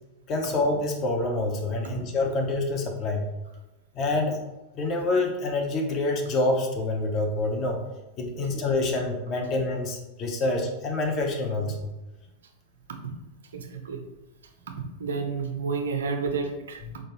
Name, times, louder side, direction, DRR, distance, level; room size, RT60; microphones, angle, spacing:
voice 1, 0.3-3.3 3.9-4.4 4.7-7.8 8.2-11.9 16.9-17.0, left 2 dB, 35° left, 2 dB, 0.7 m, -27 dB
voice 2, 13.5-14.0 15.0-16.8, right 4 dB, 65° right, 5 dB, 0.6 m, -30 dB
4.5 x 2.5 x 3.0 m, 1.0 s
figure-of-eight pair, 90°, 0 cm